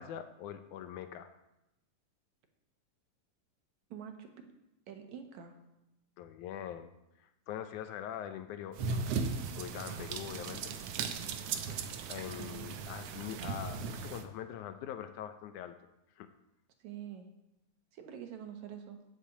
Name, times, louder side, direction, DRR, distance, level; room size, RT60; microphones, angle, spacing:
voice 1, 0.0-1.3 6.2-6.9 7.2-9.2 9.6-10.7 12.1-15.7 16.2-16.3, left 10 dB, 75° left, 9 dB, 1.9 m, -43 dB
voice 2, 3.9-4.3 4.9-5.6 12.4-12.6 16.8-17.3 17.9-19.0, right 9 dB, 65° right, 6 dB, 2.3 m, -46 dB
sound 1, 8.7-14.2, right 5 dB, 80° right, 1.3 m, -37 dB
8.4 x 8.4 x 8.5 m, 0.91 s
omnidirectional pair, 4.0 m